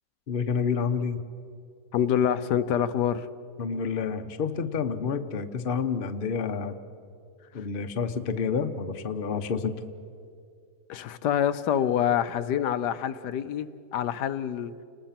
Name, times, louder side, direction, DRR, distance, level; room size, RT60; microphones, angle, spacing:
voice 1, 0.3-1.2 3.6-6.8 7.5-9.8, left 6 dB, 40° left, 1.0 m, -29 dB
voice 2, 1.9-3.3 7.6-7.7 10.9-14.7, left 9 dB, 85° left, 1.3 m, -26 dB
29.5 x 20.0 x 5.9 m
omnidirectional pair, 1.8 m